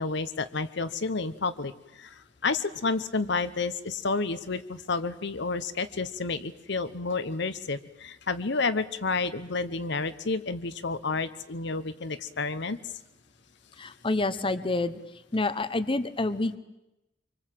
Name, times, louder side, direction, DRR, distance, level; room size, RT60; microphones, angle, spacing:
voice 1, 0.0-12.8, left 4 dB, 65° left, 12 dB, 1.0 m, -30 dB
voice 2, 13.8-15.0 15.3-16.6, left 2 dB, 30° left, 12 dB, 1.0 m, -28 dB
25.0 x 24.5 x 7.7 m, 0.93 s
head